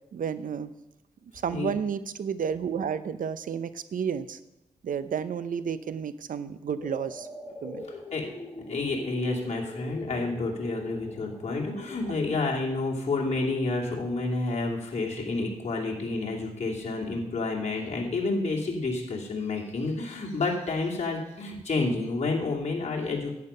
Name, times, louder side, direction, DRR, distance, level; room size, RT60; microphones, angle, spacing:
voice 1, 0.1-0.7 1.4-4.4 4.8-7.3 7.6-7.8, right 7 dB, 65° right, 14 dB, 0.7 m, -31 dB
sound 1, 6.8-12.1, left 2 dB, 10° left, 3.7 m, -42 dB
voice 2, 8.7-23.3, left 3 dB, 45° left, -3 dB, 2.6 m, -29 dB
11.0 x 8.5 x 5.5 m, 0.90 s
cardioid pair, 55°, 15 cm